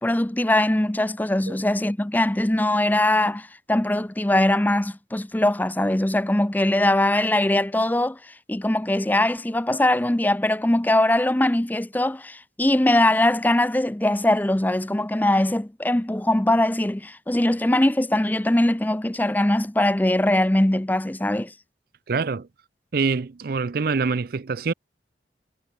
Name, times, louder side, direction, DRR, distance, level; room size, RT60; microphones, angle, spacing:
voice 1, 0.0-8.2 8.5-21.5, left 1 dB, 10° left, 0.5 m, -21 dB
voice 2, 22.1-22.5 22.9-24.7, right 4 dB, 55° right, 0.5 m, -25 dB
head